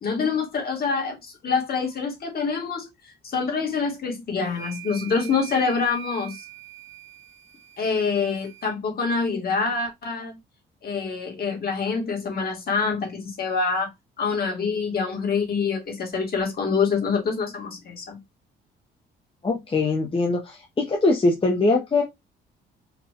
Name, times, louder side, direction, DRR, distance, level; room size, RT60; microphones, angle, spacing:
voice 1, 0.0-6.4 7.8-10.4 10.8-13.9 14.2-18.2, left 5 dB, 50° left, 2.2 m, -26 dB
sound 1, 4.5-8.7, right 12 dB, 15° right, 1.5 m, -43 dB
voice 2, 19.4-22.0, left 3 dB, 25° left, 1.1 m, -22 dB
4.7 x 2.6 x 3.7 m
cardioid pair, 90°, 20 cm